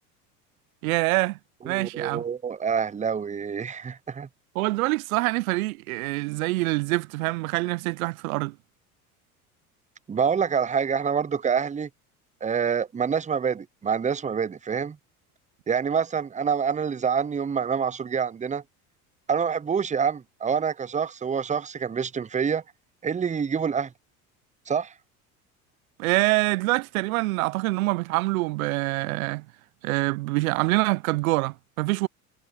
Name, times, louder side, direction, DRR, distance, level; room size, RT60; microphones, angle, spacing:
voice 1, 0.8-1.4 1.6-2.2 4.5-8.5 26.0-29.4 29.8-32.1, right 22 dB, 70° right, 0.9 m, -25 dB
voice 2, 1.6-4.3 10.1-11.9 12.4-15.0 15.7-18.6 19.3-22.6 23.0-23.9 24.7-24.9, right 6 dB, 15° right, 0.8 m, -26 dB
hypercardioid pair, 70°, 44 cm